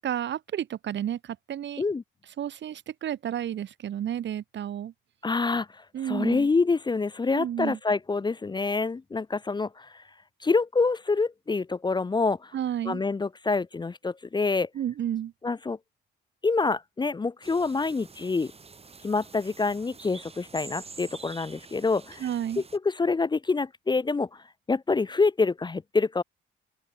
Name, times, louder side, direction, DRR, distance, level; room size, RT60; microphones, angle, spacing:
voice 1, 0.0-1.8 2.4-4.9 5.9-6.5 7.3-7.8 12.5-13.0 14.7-15.3 22.2-22.6, right 10 dB, 65° right, 2.6 m, -31 dB
voice 2, 5.2-10.0 10.4-12.5 12.9-14.7 15.4-15.8 16.4-18.5 19.0-22.2 22.8-26.2, left 4 dB, 20° left, 0.7 m, -26 dB
sound 1, 17.4-22.8, right 4 dB, 30° right, 4.4 m, -47 dB
open air
cardioid pair, 90°, 20 cm